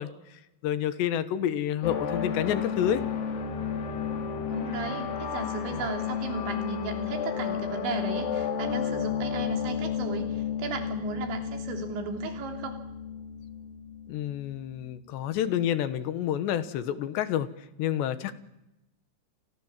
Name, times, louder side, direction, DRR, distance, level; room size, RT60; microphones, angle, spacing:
voice 1, 0.0-3.0 5.7-5.8 14.1-17.5 17.8-18.4, left 10 dB, 75° left, 13 dB, 3.3 m, -29 dB
sound 1, 1.8-14.9, left 7 dB, 55° left, 4.2 m, -32 dB
voice 2, 4.5-12.8, right 5 dB, 75° right, 5 dB, 5.5 m, -36 dB
29.5 x 24.0 x 7.4 m, 0.93 s
omnidirectional pair, 5.2 m